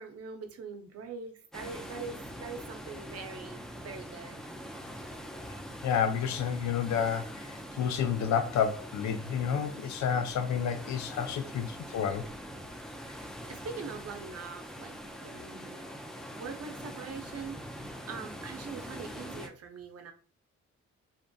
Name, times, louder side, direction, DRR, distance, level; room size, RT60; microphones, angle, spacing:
voice 1, 0.0-4.5 13.0-15.9 16.3-20.1, right 5 dB, 50° right, 0.6 m, -43 dB
sound 1, 1.5-19.5, equal, ahead, 0.5 m, -43 dB
voice 2, 5.8-12.2, left 7 dB, 65° left, 0.5 m, -30 dB
2.5 x 2.5 x 2.2 m
supercardioid pair, 55°, 31 cm